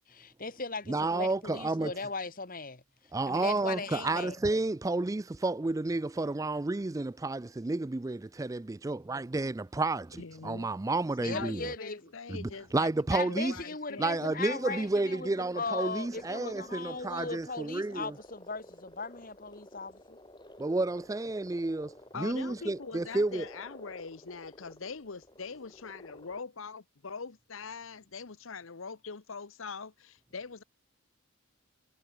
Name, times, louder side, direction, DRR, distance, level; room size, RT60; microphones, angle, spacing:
voice 1, 0.1-2.8 3.3-4.4 11.2-12.1 13.1-20.2, left 4 dB, 40° left, 2.0 m, -38 dB
voice 2, 0.9-1.9 3.1-11.7 12.3-13.5 14.0-18.1 20.6-23.4, right 2 dB, 15° right, 0.3 m, -31 dB
voice 3, 10.2-10.7 11.3-14.3 22.1-30.6, left 5 dB, 65° left, 0.9 m, -43 dB
sound 1, 16.0-26.4, left 1 dB, 20° left, 5.9 m, -53 dB
head